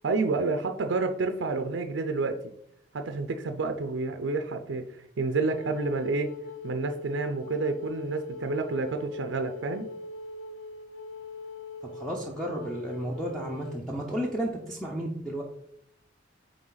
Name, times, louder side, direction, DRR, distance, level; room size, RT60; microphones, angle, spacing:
voice 1, 0.0-2.4 2.9-6.3 6.6-9.9, right 3 dB, 75° right, 6 dB, 0.5 m, -29 dB
Wind instrument woodwind instrument, 5.4-13.8, left 2 dB, 80° left, 0.5 m, -42 dB
voice 2, 11.8-15.4, right 1 dB, ahead, -2 dB, 0.7 m, -33 dB
8.7 x 3.4 x 3.9 m, 0.74 s
head